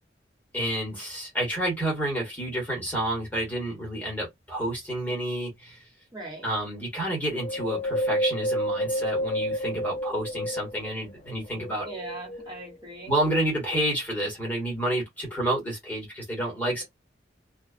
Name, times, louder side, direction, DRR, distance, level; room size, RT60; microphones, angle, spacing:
voice 1, 0.5-5.8 6.4-11.9 13.1-16.8, right 1 dB, 10° left, 1.3 m, -29 dB
voice 2, 6.1-6.5 11.8-13.1, right 2 dB, 25° right, 1.3 m, -39 dB
Wind, 7.4-11.0 11.5-12.8 13.3-13.4, equal, 30° left, 0.4 m, -29 dB
2.4 x 2.3 x 2.4 m
head